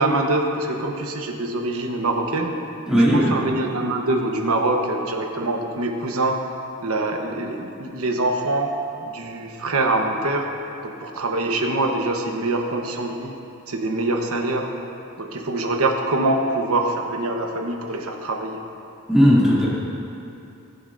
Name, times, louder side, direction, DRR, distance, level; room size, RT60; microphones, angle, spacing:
voice 1, 0.0-2.6 3.1-6.4 6.8-8.7 9.0-10.5 10.8-13.3 13.7-14.7 15.2-18.6, right 2 dB, 70° right, 2 dB, 1.1 m, -24 dB
voice 2, 2.9-3.3 19.1-19.7, equal, 5° right, -9 dB, 2.6 m, -16 dB
20.5 x 7.9 x 2.6 m, 2.7 s
head